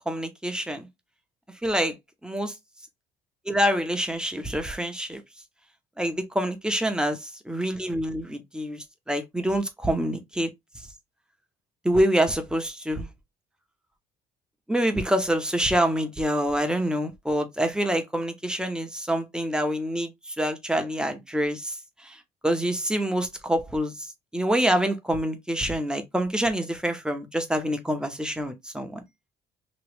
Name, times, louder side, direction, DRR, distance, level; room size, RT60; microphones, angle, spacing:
voice 1, 0.1-0.9 1.6-2.0 2.2-2.5 3.4-5.2 6.0-10.9 11.8-13.1 14.7-29.0, equal, 5° right, 0.7 m, -26 dB
3.0 x 2.9 x 3.2 m
cardioid pair, 110°, 17 cm